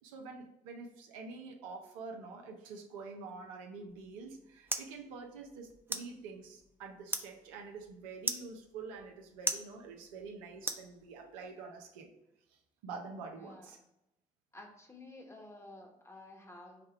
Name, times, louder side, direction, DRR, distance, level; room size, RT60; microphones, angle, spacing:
voice 1, 0.0-12.1 12.5-13.8, right 4 dB, 85° right, 3 dB, 0.6 m, -47 dB
sound 1, 3.9-11.4, right 2 dB, 15° right, 0.5 m, -42 dB
voice 2, 13.3-13.7 14.5-16.8, left 2 dB, 15° left, 2 dB, 1.0 m, -52 dB
5.0 x 2.2 x 4.3 m, 0.85 s
hypercardioid pair, 50°, 17 cm